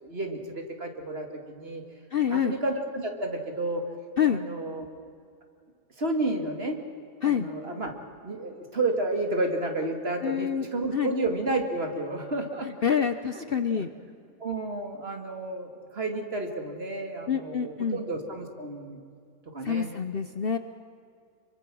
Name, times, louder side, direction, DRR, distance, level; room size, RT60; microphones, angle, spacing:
voice 1, 0.0-1.8 2.3-3.8 4.3-4.9 6.0-6.8 7.2-7.9 8.2-13.0 13.3-13.4 13.7-13.8 14.4-19.0 19.5-19.9, right 2 dB, 45° right, 3 dB, 2.6 m, -31 dB
voice 2, 2.1-2.5 4.2-4.4 7.2-7.5 10.2-11.1 12.6-13.9 17.3-18.0 19.6-20.6, left 8 dB, 50° left, 10 dB, 0.8 m, -27 dB
27.0 x 23.5 x 6.2 m, 2.3 s
omnidirectional pair, 1.5 m